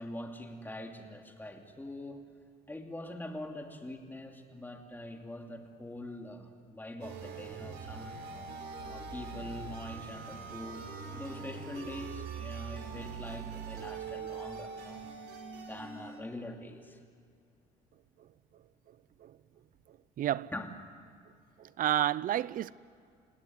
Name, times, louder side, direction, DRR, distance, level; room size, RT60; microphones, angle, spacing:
voice 1, 0.0-2.3 2.7-8.3 8.8-15.0 15.6-17.0 20.5-20.7, left 1 dB, 10° left, 2.7 m, -44 dB
sound 1, 7.0-16.2, right 5 dB, 85° right, 4.0 m, -42 dB
voice 2, 20.2-20.5 21.6-22.7, right 12 dB, 55° right, 0.6 m, -30 dB
29.0 x 17.5 x 9.4 m
cardioid pair, 110°, 17 cm